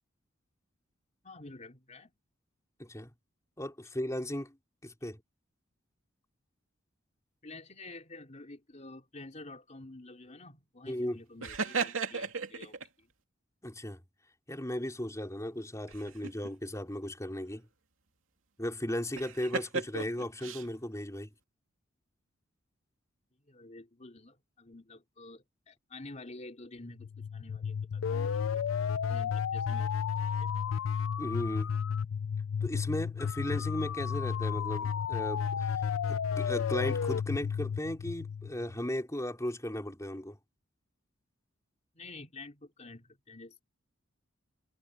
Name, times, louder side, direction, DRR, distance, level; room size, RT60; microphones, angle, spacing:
voice 1, 1.2-2.1 7.4-13.1 23.5-28.6 29.1-30.1 30.4-30.5 41.9-43.6, left 2 dB, 35° left, 3.3 m, -49 dB
voice 2, 2.8-3.1 3.6-4.6 4.8-5.2 10.9-11.2 13.6-14.0 14.5-17.7 18.6-21.3 31.2-31.7 32.6-40.4, left 1 dB, 15° left, 4.1 m, -36 dB
sound 1, 11.4-12.9 15.9-16.5 19.2-20.7, right 5 dB, 85° right, 2.7 m, -35 dB
sound 2, 27.0-38.8, left 7 dB, 80° left, 0.4 m, -32 dB
head